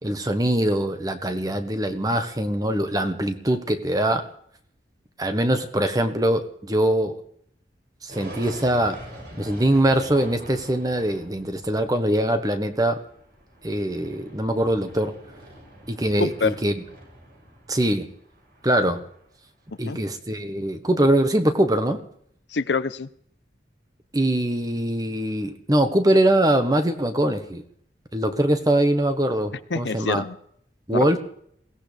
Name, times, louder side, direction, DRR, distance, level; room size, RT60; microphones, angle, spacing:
voice 1, 0.0-4.3 5.2-7.2 8.0-9.0 9.4-13.0 13.6-15.1 15.9-16.8 17.7-18.1 18.6-19.0 19.8-22.0 24.1-27.6 28.1-30.2 30.9-31.2, right 1 dB, 20° right, 7 dB, 1.3 m, -22 dB
sound 1, 8.1-19.3, equal, 60° right, 6.4 m, -44 dB
voice 2, 16.2-16.6 19.9-20.0 22.5-23.1 29.7-30.4 30.9-31.2, left 4 dB, 85° left, 13 dB, 0.8 m, -25 dB
22.0 x 17.0 x 3.5 m, 0.65 s
head